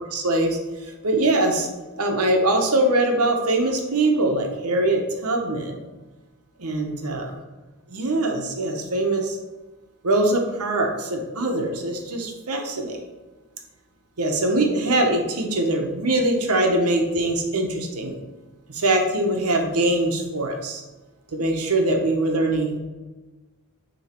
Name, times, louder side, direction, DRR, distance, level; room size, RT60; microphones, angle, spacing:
voice 1, 0.1-1.7 2.0-5.7 6.6-7.3 7.9-9.4 10.0-13.0 14.2-18.2 18.7-20.8 21.3-22.8, right 2 dB, 90° right, 2 dB, 1.0 m, -22 dB
7.4 x 3.1 x 4.4 m, 1.2 s
head